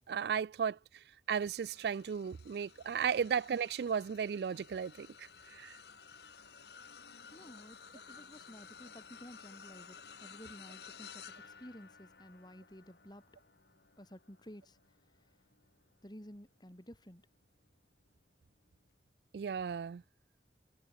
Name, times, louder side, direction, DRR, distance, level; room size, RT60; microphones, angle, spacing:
voice 1, 0.1-0.8 1.3-5.8 19.3-20.0, right 7 dB, 65° right, 0.3 m, -35 dB
sound 1, 1.3-16.8 17.3-17.6 18.9-19.0, left 6 dB, 70° left, 2.0 m, -55 dB
voice 2, 7.3-13.2 14.0-14.8 16.0-17.2, equal, 25° left, 3.2 m, -53 dB
head